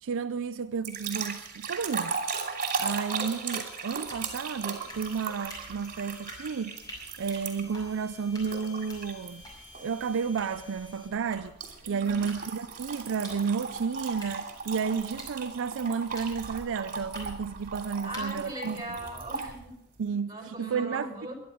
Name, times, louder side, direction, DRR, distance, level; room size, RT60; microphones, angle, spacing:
voice 1, 0.0-2.2 2.8-6.8 7.2-9.4 9.8-11.6 11.9-18.8 20.0-21.1, right 6 dB, 60° right, 0.5 m, -32 dB
sound 1, 0.8-7.8 8.4-9.3 9.7-10.0 11.6-19.5, right 5 dB, 40° right, 2.8 m, -37 dB
sound 2, 2.9-11.1, left 2 dB, 70° left, 5.2 m, -53 dB
sound 3, 3.9-19.5, equal, 20° left, 6.3 m, -49 dB
voice 2, 11.8-12.2 18.0-19.7 20.3-21.3, right 1 dB, 20° right, 4.7 m, -39 dB
21.5 x 11.0 x 4.9 m
head